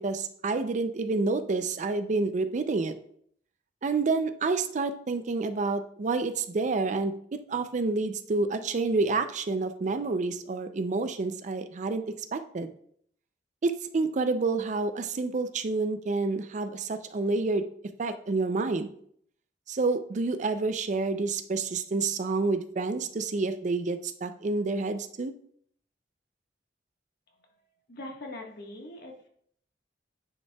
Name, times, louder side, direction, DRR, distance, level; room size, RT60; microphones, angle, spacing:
voice 1, 0.0-2.9 3.8-7.1 7.5-12.7 13.6-17.6 18.0-18.9 19.7-25.3, right 3 dB, 45° right, 10 dB, 0.4 m, -28 dB
voice 2, 27.9-29.3, left 1 dB, 60° left, 1 dB, 1.4 m, -42 dB
9.6 x 5.4 x 2.3 m, 0.63 s
head